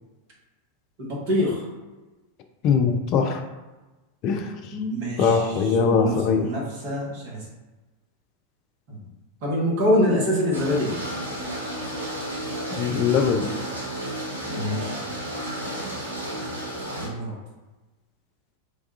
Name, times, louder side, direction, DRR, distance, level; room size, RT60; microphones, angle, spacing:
voice 1, 1.0-1.6 4.7-7.5 8.9-9.0 9.4-11.0 14.5-15.0 16.9-17.4, left 1 dB, 45° right, -4 dB, 1.0 m, -25 dB
voice 2, 2.6-3.4 4.2-4.5 5.2-6.5 12.7-13.5, left 6 dB, 40° left, 5 dB, 0.4 m, -21 dB
sound 1, 10.5-17.1, right 1 dB, 80° right, 0.7 m, -32 dB
3.3 x 2.3 x 2.6 m, 1.1 s
figure-of-eight pair, 90°, 0 cm